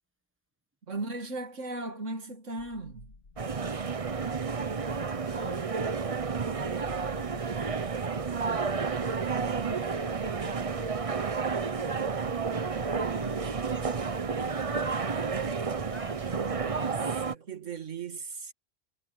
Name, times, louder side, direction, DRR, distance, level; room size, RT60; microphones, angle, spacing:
voice 1, 0.9-3.1 16.6-18.5, right 3 dB, 80° right, 2.3 m, -37 dB
sound 1, 2.6-16.8, left 3 dB, 80° left, 2.2 m, -51 dB
sound 2, 3.4-17.3, right 5 dB, 30° right, 0.8 m, -31 dB
voice 2, 5.2-8.5 9.1-17.2, equal, 10° right, 1.3 m, -48 dB
omnidirectional pair, 1.3 m